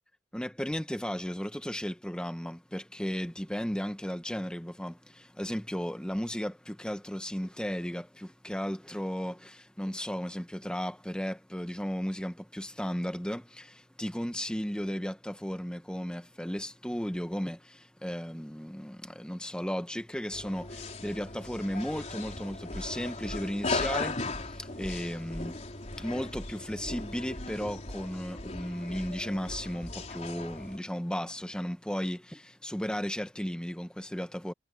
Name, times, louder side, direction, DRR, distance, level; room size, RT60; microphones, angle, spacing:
voice 1, 0.3-25.6 25.9-34.5, equal, 5° left, 1.0 m, -35 dB
sound 1, 20.3-30.8, left 3 dB, 40° left, 3.9 m, -37 dB
head